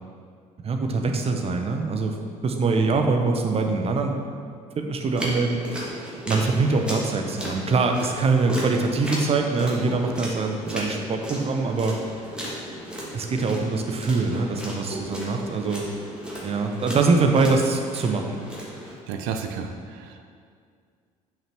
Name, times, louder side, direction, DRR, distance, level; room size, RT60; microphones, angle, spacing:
voice 1, 0.6-2.1 2.4-4.1 4.8-5.6 6.3-12.0 13.1-15.8 16.4-18.4, right 3 dB, 30° right, 4 dB, 1.1 m, -23 dB
sound 1, 5.1-19.0, equal, 5° right, 2.5 m, -35 dB
voice 2, 19.1-20.3, right 6 dB, 60° right, 5 dB, 0.8 m, -32 dB
7.2 x 6.2 x 6.0 m, 2.1 s
figure-of-eight pair, 60°, 19 cm